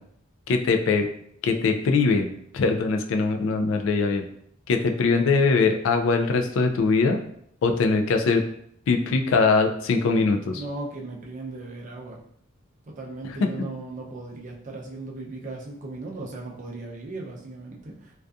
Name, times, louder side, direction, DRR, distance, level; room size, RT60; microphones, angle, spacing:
voice 1, 0.5-1.1 1.4-2.3 2.5-4.3 4.7-7.2 7.6-8.4 8.9-10.6, left 4 dB, 65° left, 5 dB, 0.3 m, -22 dB
voice 2, 10.5-12.2 12.9-18.1, right 2 dB, 40° right, -1 dB, 0.4 m, -37 dB
2.6 x 2.3 x 2.3 m, 0.69 s
head